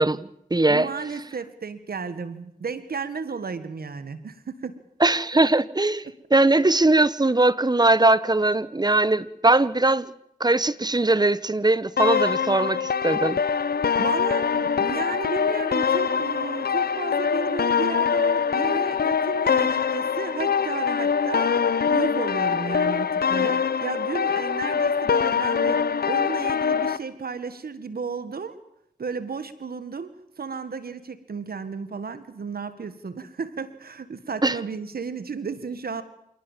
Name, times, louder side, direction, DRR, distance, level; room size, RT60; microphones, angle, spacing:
voice 1, 0.0-0.9 5.0-6.0 6.3-10.1 10.4-13.4 34.4-34.6, right 2 dB, 25° right, 18 dB, 1.1 m, -20 dB
voice 2, 0.7-4.8 14.0-21.6 21.9-28.6 29.0-36.0, right 5 dB, 75° right, 13 dB, 1.7 m, -33 dB
sound 1, 12.0-27.0, left 6 dB, 75° left, 0.8 m, -23 dB
27.5 x 18.0 x 7.4 m, 0.78 s
cardioid pair, 50°, 16 cm